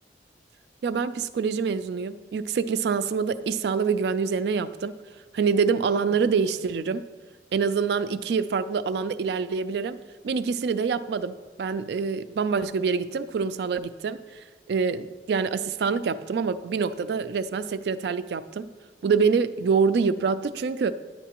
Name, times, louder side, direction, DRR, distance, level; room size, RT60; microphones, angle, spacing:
voice 1, 0.8-4.9 5.3-7.0 7.5-10.0 10.2-14.4 14.7-18.7 19.0-20.9, right 5 dB, 65° right, 13 dB, 0.3 m, -26 dB
9.9 x 9.1 x 2.9 m, 1.4 s
head